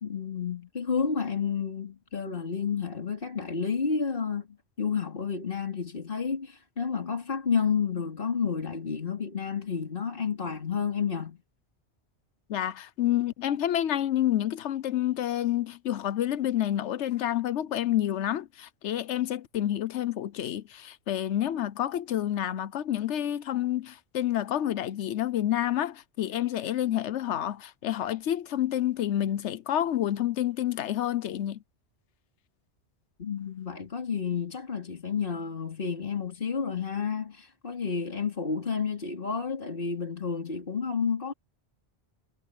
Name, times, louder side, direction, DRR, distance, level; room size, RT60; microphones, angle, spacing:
voice 1, 0.0-4.5 4.8-11.4 33.2-41.3, left 6 dB, 50° left, 2.9 m, -30 dB
voice 2, 12.5-31.6, left 12 dB, 85° left, 1.0 m, -29 dB
omnidirectional pair, 1.2 m